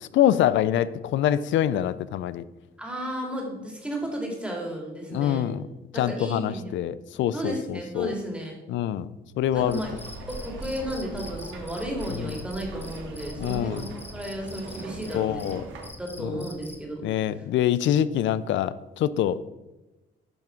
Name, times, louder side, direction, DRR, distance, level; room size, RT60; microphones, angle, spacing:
voice 1, 0.0-2.4 5.1-5.6 5.9-8.1 8.7-9.1 9.4-9.8 12.2-12.3 13.4-13.9 15.1-15.6 16.2-16.4 17.0-19.4, left 11 dB, 75° left, 16 dB, 0.4 m, -25 dB
voice 2, 2.8-5.5 5.9-6.9 7.3-8.5 9.5-9.9 10.3-15.5 16.0-17.0 17.4-17.5, right 1 dB, 5° right, -1 dB, 2.3 m, -33 dB
sound 1, 9.5-15.9, right 2 dB, 75° right, 1.5 m, -40 dB
Cricket, 9.7-16.9, left 1 dB, 10° left, 1.0 m, -46 dB
10.5 x 3.6 x 4.4 m, 1.0 s
cardioid pair, 90°, 20 cm